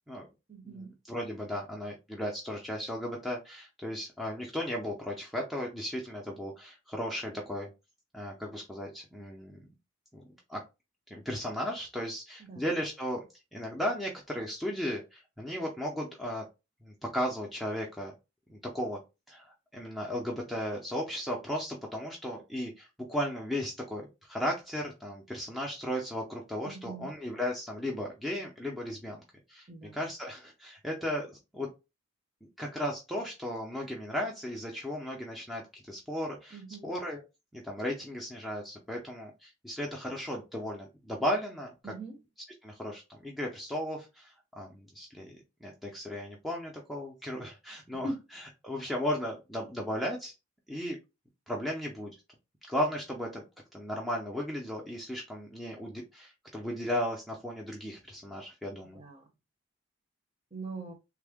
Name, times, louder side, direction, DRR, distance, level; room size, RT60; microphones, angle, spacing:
voice 1, 0.5-1.0 12.4-12.6 26.6-27.1 29.7-30.0 36.5-36.9 41.8-42.2 48.0-48.2 58.9-59.2 60.5-60.9, right 2 dB, 30° right, 0.8 m, -41 dB
voice 2, 1.1-7.7 8.1-9.7 10.1-10.2 10.5-10.6 11.1-13.2 13.5-16.5 16.8-18.1 18.5-19.0 19.3-29.2 29.5-29.7 29.9-31.7 32.6-36.6 36.8-37.2 37.5-41.7 42.6-48.1 48.6-50.3 50.7-51.0 51.5-52.2 52.7-53.4 53.7-59.0, equal, ahead, 0.5 m, -35 dB
3.4 x 2.1 x 3.4 m
head